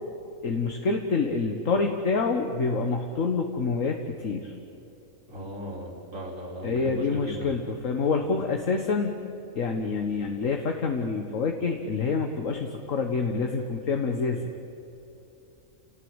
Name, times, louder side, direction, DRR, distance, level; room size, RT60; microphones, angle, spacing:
voice 1, 0.4-4.5 6.6-9.2 9.6-14.5, left 4 dB, 70° left, 4 dB, 1.8 m, -27 dB
voice 2, 5.3-7.5, equal, 70° right, -1 dB, 4.6 m, -36 dB
29.5 x 19.0 x 8.1 m, 2.9 s
omnidirectional pair, 1.4 m